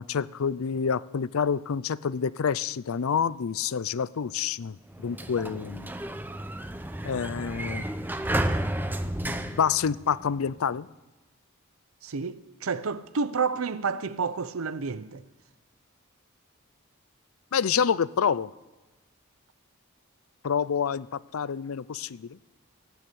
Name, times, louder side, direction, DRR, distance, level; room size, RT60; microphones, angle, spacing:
voice 1, 0.0-5.9 7.0-7.8 9.2-10.9 17.5-18.5 20.4-22.4, left 7 dB, 85° left, 0.5 m, -28 dB
Sliding door, 4.9-10.5, right 1 dB, 10° right, 0.7 m, -32 dB
voice 2, 12.0-15.2, right 5 dB, 90° right, 0.7 m, -30 dB
17.0 x 9.5 x 8.5 m
head